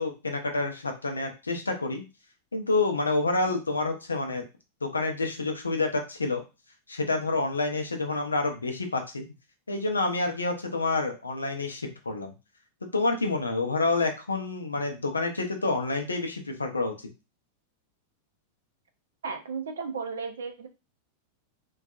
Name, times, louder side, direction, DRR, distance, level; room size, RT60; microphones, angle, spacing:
voice 1, 0.0-2.0 2.5-4.4 4.8-6.4 6.9-9.2 9.7-12.3 12.8-16.9, left 3 dB, 75° left, 4 dB, 0.5 m, -28 dB
voice 2, 19.2-20.7, right 5 dB, 65° right, 7 dB, 0.4 m, -34 dB
2.6 x 2.3 x 2.3 m, 0.29 s
figure-of-eight pair, 90°, 0 cm